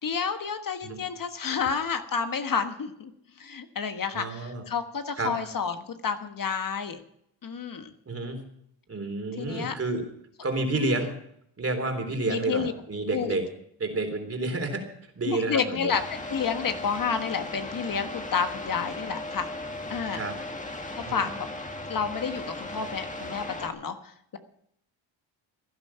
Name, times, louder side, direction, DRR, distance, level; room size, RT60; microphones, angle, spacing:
voice 1, 0.0-3.1 3.4-7.0 7.4-7.9 9.4-9.7 10.7-10.9 12.3-12.7 13.1-13.4 15.2-19.6 19.9-20.2 21.0-21.3 21.9-24.4, left 6 dB, 45° left, 8 dB, 1.4 m, -30 dB
voice 2, 4.1-4.6 5.2-5.3 8.1-8.4 8.9-10.0 10.4-11.1 11.6-13.4 13.8-14.9 15.2-15.9 20.1-20.3 21.0-21.3, right 2 dB, 30° right, 5 dB, 3.6 m, -30 dB
sound 1, 15.9-23.7, left 2 dB, 15° left, 1.9 m, -37 dB
16.0 x 11.0 x 5.7 m, 0.73 s
cardioid pair, 95°, 48 cm